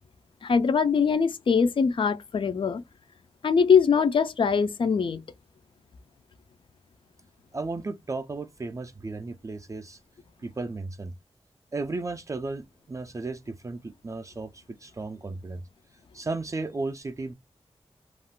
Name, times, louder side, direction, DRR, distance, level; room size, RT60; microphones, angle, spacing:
voice 1, 0.4-2.8 3.4-5.2, left 6 dB, 50° left, 0.4 m, -22 dB
voice 2, 7.5-10.0 10.4-11.1 11.7-15.6 16.1-17.3, right 3 dB, 30° right, 0.3 m, -34 dB
2.4 x 2.1 x 3.5 m
wide cardioid pair, 95°, 11 cm